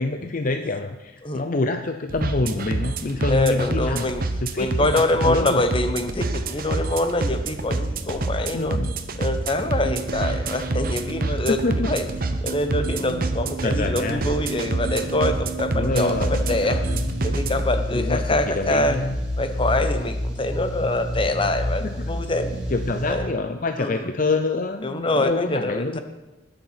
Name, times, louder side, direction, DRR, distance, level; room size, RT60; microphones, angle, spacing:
voice 1, 0.0-4.1 4.4-5.6 8.5-9.0 11.5-11.9 13.0-13.2 13.6-14.3 15.7-17.0 17.9-19.2 21.8-22.1 22.7-26.0, left 3 dB, 45° left, 7 dB, 0.6 m, -26 dB
sound 1, 2.1-17.6, right 2 dB, 50° right, 0.9 m, -27 dB
voice 2, 3.3-4.2 4.6-8.8 9.2-11.6 11.8-12.0 12.4-16.8 17.2-19.0 19.4-22.5 23.0-23.3 23.8-24.0 24.8-26.0, left 2 dB, 30° left, 8 dB, 1.0 m, -25 dB
sound 2, 15.9-23.1, left 1 dB, 5° right, 3.5 m, -29 dB
20.0 x 6.9 x 5.8 m, 1.0 s
head